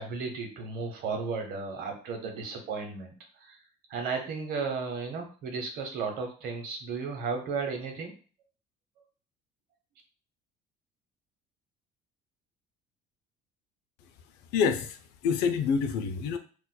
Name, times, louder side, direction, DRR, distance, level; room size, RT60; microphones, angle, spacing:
voice 1, 0.0-3.6 3.9-8.1, right 4 dB, 65° right, 3 dB, 0.9 m, -34 dB
voice 2, 14.5-16.4, left 6 dB, 75° left, 8 dB, 0.5 m, -27 dB
4.1 x 2.4 x 2.2 m, 0.39 s
cardioid pair, 150°, 17 cm